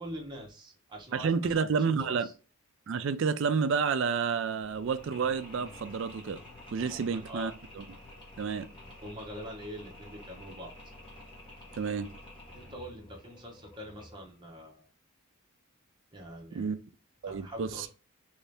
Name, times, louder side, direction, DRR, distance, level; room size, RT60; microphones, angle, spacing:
voice 1, 0.0-2.3 6.8-7.5 9.0-10.7 12.5-14.9 16.1-16.7 17.2-17.9, equal, 20° right, 0.8 m, -44 dB
voice 2, 1.1-2.3 2.9-6.4 6.7-7.8 8.4-8.7 11.8-12.1 16.5-16.8 17.2-17.9, right 5 dB, 55° right, 0.3 m, -30 dB
Mechanisms, 4.6-14.4, left 1 dB, 20° left, 1.0 m, -50 dB
3.1 x 2.7 x 3.3 m
head